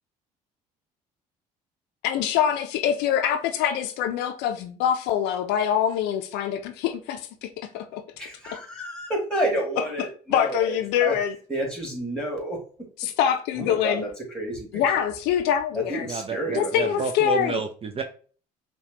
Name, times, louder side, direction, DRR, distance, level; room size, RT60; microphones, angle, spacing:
voice 1, 2.0-8.0 10.3-11.3 13.0-14.0 14.7-16.1 16.5-17.6, left 9 dB, 70° left, 0.5 m, -24 dB
voice 2, 8.2-11.2 11.5-12.6 13.5-15.0 15.9-16.9, right 1 dB, 5° left, 1.9 m, -30 dB
voice 3, 16.1-18.0, right 5 dB, 35° right, 0.5 m, -30 dB
5.6 x 2.3 x 2.8 m
hypercardioid pair, 70°, 18 cm